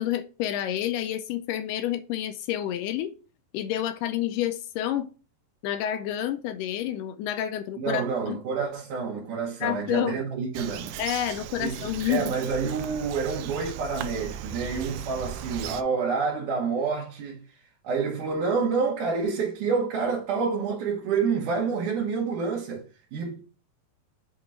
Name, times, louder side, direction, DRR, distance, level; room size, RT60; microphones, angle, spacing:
voice 1, 0.0-3.1 3.5-5.1 5.6-8.4 9.6-10.2 11.0-12.3, left 11 dB, 80° left, 2.1 m, -29 dB
voice 2, 7.8-11.0 11.6-17.6 17.8-22.8 23.1-23.4, right 5 dB, 70° right, 2.4 m, -28 dB
Bird vocalization bird call bird song, 10.5-15.8, right 9 dB, 85° right, 1.8 m, -37 dB
7.4 x 2.9 x 4.4 m
omnidirectional pair, 4.1 m